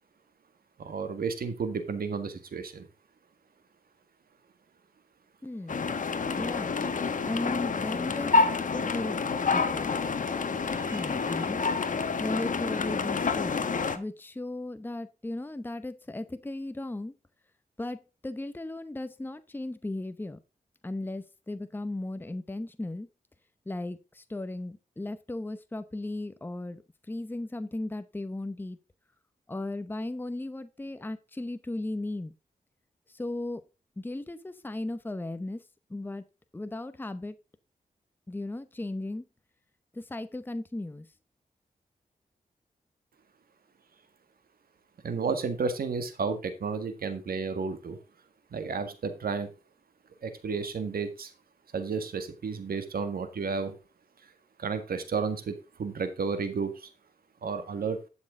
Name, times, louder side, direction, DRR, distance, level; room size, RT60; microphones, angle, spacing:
voice 1, 0.8-2.9 10.7-11.0 45.0-48.0 48.5-49.5 50.2-51.3 51.7-53.7 54.6-56.9 57.4-58.0, right 5 dB, 80° right, 9 dB, 1.7 m, -32 dB
voice 2, 5.4-5.9 6.4-6.7 7.2-8.4 8.7-9.2 9.5-9.9 10.9-11.6 12.2-13.6 13.9-17.1 17.8-20.4 20.8-23.1 23.7-26.8 27.1-28.8 29.5-32.3 33.1-33.6 34.0-35.6 35.9-36.2 36.5-37.4 38.3-39.3 39.9-41.1, left 2 dB, 15° left, 11 dB, 0.8 m, -36 dB
sound 1, 5.7-14.0, left 4 dB, 60° left, 1.2 m, -28 dB
11.5 x 6.5 x 3.7 m, 0.29 s
wide cardioid pair, 95°, 15 cm